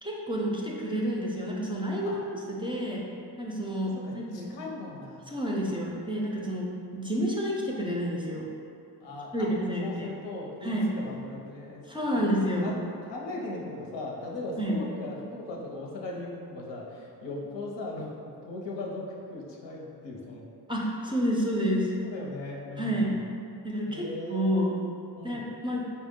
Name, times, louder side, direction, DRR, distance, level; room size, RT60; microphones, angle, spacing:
voice 1, 0.0-3.0 3.4-4.5 5.3-8.4 9.3-10.1 10.6-10.9 11.9-12.7 14.6-14.8 20.7-21.9 22.8-23.1 23.6-24.7 25.2-25.8, equal, 10° right, -3 dB, 0.4 m, -29 dB
voice 2, 3.8-5.4 9.0-9.5 9.8-11.8 12.1-12.3 12.6-18.1 18.4-20.5 22.0-23.2 23.8-24.7 25.2-25.4, left 2 dB, 90° left, -2 dB, 0.7 m, -38 dB
4.4 x 2.1 x 3.6 m, 2.5 s
cardioid pair, 90°, 42 cm